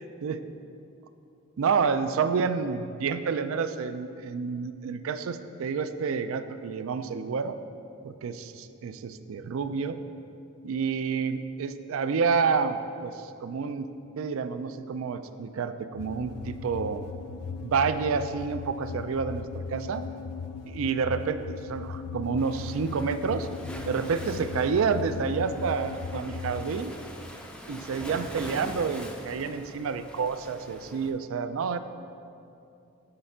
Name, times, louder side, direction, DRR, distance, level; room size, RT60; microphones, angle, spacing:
voice 1, 1.6-7.6 8.0-10.0 10.6-17.1 17.6-20.0 20.7-23.5 23.8-27.0 27.7-31.8, right 5 dB, 65° right, 11 dB, 0.4 m, -29 dB
sound 1, 16.0-26.8, left 5 dB, 85° left, 0.3 m, -38 dB
Waves surf, 22.4-31.1, equal, 5° left, 0.4 m, -43 dB
8.7 x 4.4 x 5.5 m, 2.6 s
head